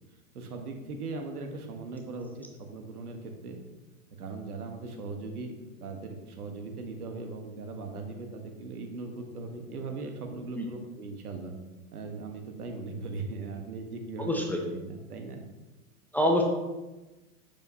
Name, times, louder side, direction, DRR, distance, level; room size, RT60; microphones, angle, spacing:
voice 1, 0.3-3.6 4.2-11.5 11.9-15.4, right 3 dB, 75° right, 3 dB, 1.6 m, -39 dB
voice 2, 14.2-14.6 16.1-16.4, left 1 dB, 5° left, 0 dB, 0.6 m, -25 dB
8.2 x 7.0 x 2.9 m, 1.1 s
hypercardioid pair, 105°, 45 cm